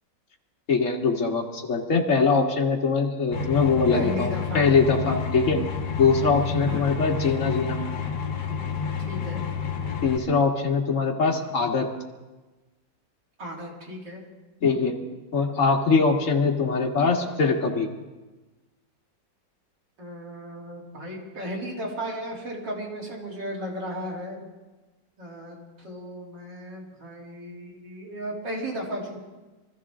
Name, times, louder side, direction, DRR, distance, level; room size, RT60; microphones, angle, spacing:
voice 1, 0.7-5.6 6.0-7.8 10.0-11.9 14.6-15.0 15.3-17.9, left 4 dB, 45° left, 0 dB, 2.1 m, -22 dB
sound 1, 3.3-10.2, left 7 dB, 65° left, 1.9 m, -30 dB
voice 2, 3.9-4.7 6.7-7.1 9.0-9.4 13.4-14.2 20.0-24.4 25.2-29.2, equal, 75° right, -3 dB, 3.9 m, -35 dB
24.0 x 14.5 x 3.7 m, 1.2 s
omnidirectional pair, 2.0 m